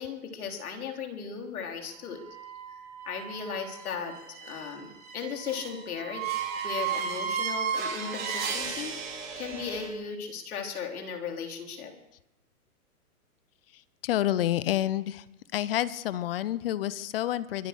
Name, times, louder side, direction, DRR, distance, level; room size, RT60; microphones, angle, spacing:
voice 1, 0.0-2.2 3.0-6.2 6.6-11.9, left 6 dB, 70° left, 3 dB, 3.4 m, -37 dB
sound 1, 2.2-9.9, right 6 dB, 20° right, 3.1 m, -35 dB
voice 2, 14.0-15.2 15.5-17.7, left 13 dB, 40° left, 18 dB, 0.7 m, -28 dB
23.5 x 9.1 x 6.5 m, 0.89 s
hypercardioid pair, 145°, 45 cm